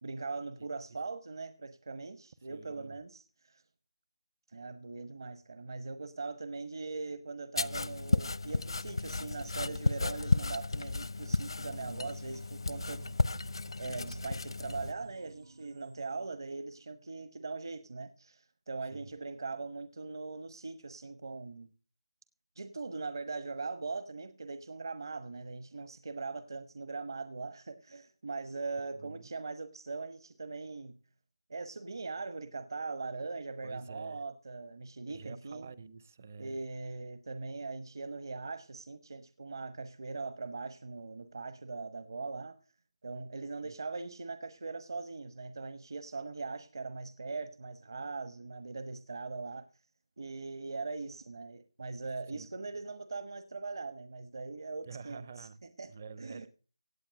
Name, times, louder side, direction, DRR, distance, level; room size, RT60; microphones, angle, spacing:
voice 1, 0.0-3.6 4.5-13.1 13.8-21.7 22.6-30.9 31.5-35.7 36.4-42.6 43.0-49.7 50.2-55.5 55.8-55.9 56.2-56.5, right 3 dB, 50° right, 1.1 m, -41 dB
voice 2, 0.6-1.0 2.4-3.0 18.8-19.1 29.0-29.3 33.6-34.2 35.1-36.6 43.6-43.8 52.3-52.5 54.8-55.6 55.9-56.5, right 5 dB, 25° right, 0.6 m, -49 dB
sound 1, 7.6-14.9, left 3 dB, 75° left, 0.7 m, -33 dB
sound 2, 11.7-17.0, right 3 dB, 70° right, 4.3 m, -51 dB
17.5 x 8.5 x 6.4 m
figure-of-eight pair, 175°, 3 cm